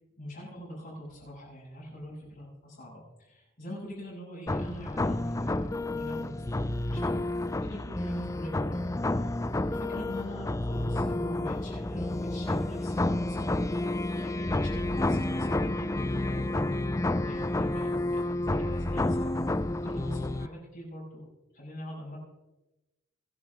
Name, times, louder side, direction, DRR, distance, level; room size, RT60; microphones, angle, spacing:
voice 1, 0.2-7.1 7.6-8.8 9.6-19.4 19.8-22.2, equal, 45° left, -10 dB, 7.1 m, -43 dB
sound 1, 4.5-20.5, left 2 dB, 15° left, 0.4 m, -30 dB
27.5 x 11.0 x 3.6 m, 1.0 s
head